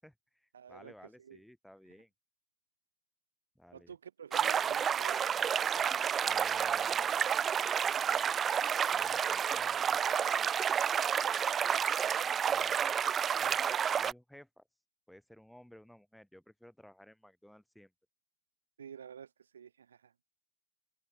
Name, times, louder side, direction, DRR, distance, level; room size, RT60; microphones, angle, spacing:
voice 1, 0.0-2.1 3.5-4.0 6.2-7.0 8.0-8.4 8.9-10.0 10.4-10.5 12.5-12.8 13.3-14.6 15.1-17.9, equal, ahead, 6.1 m, -56 dB
voice 2, 0.5-1.4 1.9-2.0 3.7-5.2 18.8-20.1, right 8 dB, 65° right, 1.8 m, -50 dB
sound 1, 4.3-14.1, right 8 dB, 25° right, 0.6 m, -30 dB
open air
figure-of-eight pair, 90°, 0 cm